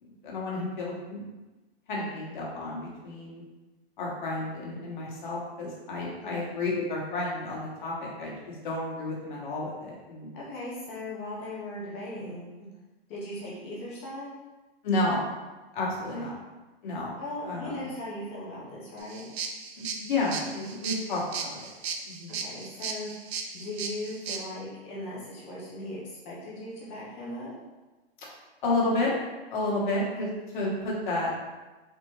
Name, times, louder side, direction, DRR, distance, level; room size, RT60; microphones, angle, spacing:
voice 1, 0.0-1.3 1.9-3.4 4.0-10.3 14.8-15.2 15.7-16.3 16.8-17.2 17.4-17.9 19.8-21.7 22.0-22.4 28.6-29.1 29.5-30.3 30.5-31.4, left 2 dB, 50° left, -4 dB, 1.5 m, -31 dB
voice 2, 10.3-12.5 13.1-14.3 16.1-16.3 17.2-19.3 22.4-23.1 23.5-27.5, left 1 dB, 15° left, -6 dB, 0.4 m, -38 dB
sound 1, 19.0-24.4, right 6 dB, 80° right, 0.7 m, -36 dB
4.1 x 3.6 x 3.1 m, 1.2 s
hypercardioid pair, 165°, 31 cm